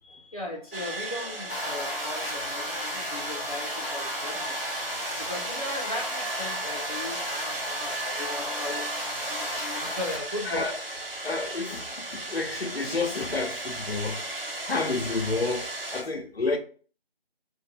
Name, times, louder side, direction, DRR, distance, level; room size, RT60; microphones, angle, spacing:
voice 1, 0.0-4.8 5.2-10.7, left 1 dB, 35° left, 0.6 m, -37 dB
sound 1, 0.7-16.0, right 2 dB, 75° right, 1.0 m, -36 dB
sound 2, 1.5-10.1, left 1 dB, 20° right, 1.1 m, -34 dB
voice 2, 10.4-10.8 11.2-14.2 14.6-16.6, left 3 dB, 85° left, 0.8 m, -30 dB
2.7 x 2.2 x 4.1 m
figure-of-eight pair, 165°, 30 cm